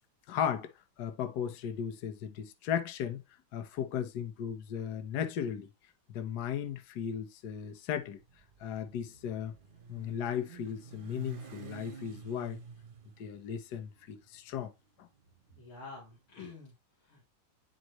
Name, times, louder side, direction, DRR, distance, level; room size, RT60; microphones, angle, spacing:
voice 1, 0.3-0.7 1.0-3.2 3.5-5.7 6.1-8.2 8.6-9.5 9.9-12.6 13.2-14.7 15.0-15.1, left 8 dB, 55° left, 1.4 m, -36 dB
Motorcycle, 8.0-16.2, right 5 dB, 55° right, 0.5 m, -50 dB
voice 2, 15.5-17.2, left 4 dB, 80° left, 3.7 m, -49 dB
11.0 x 4.3 x 3.0 m
omnidirectional pair, 2.2 m